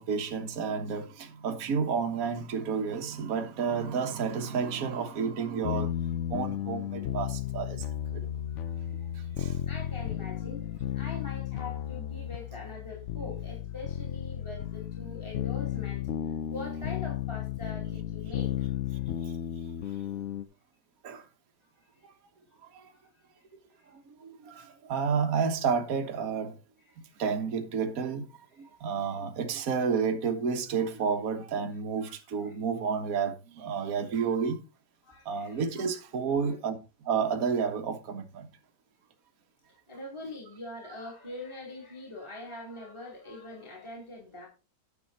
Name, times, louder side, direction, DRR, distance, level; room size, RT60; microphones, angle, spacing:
voice 1, 0.0-5.9 6.3-7.8 8.1-8.2 9.4-9.5 21.0-21.2 22.7-22.8 24.2-26.5 27.2-28.2 28.8-34.6 35.3-36.8 37.1-38.5, right 6 dB, 50° right, 1.5 m, -30 dB
sound 1, 5.6-20.4, left 11 dB, 75° left, 0.6 m, -34 dB
voice 2, 8.5-18.8 21.9-22.0 23.0-23.1 23.8-23.9 26.8-27.0 32.0-32.5 35.0-36.0 36.4-36.5 39.9-44.5, left 2 dB, 15° left, 2.9 m, -44 dB
9.8 x 7.0 x 4.2 m
omnidirectional pair, 2.1 m